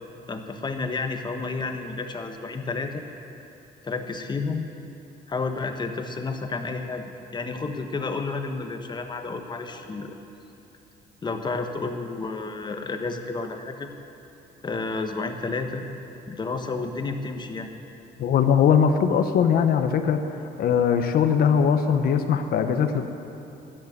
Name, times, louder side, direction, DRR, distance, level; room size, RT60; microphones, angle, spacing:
voice 1, 0.3-3.0 3.8-4.7 5.3-7.0 7.3-10.2 11.2-13.9 14.6-15.9 16.3-17.7, left 3 dB, 25° left, 5 dB, 1.3 m, -31 dB
voice 2, 18.2-20.3 20.6-23.0, left 7 dB, 60° left, 8 dB, 1.2 m, -20 dB
13.0 x 11.5 x 8.9 m, 2.9 s
cardioid pair, 110°, 17 cm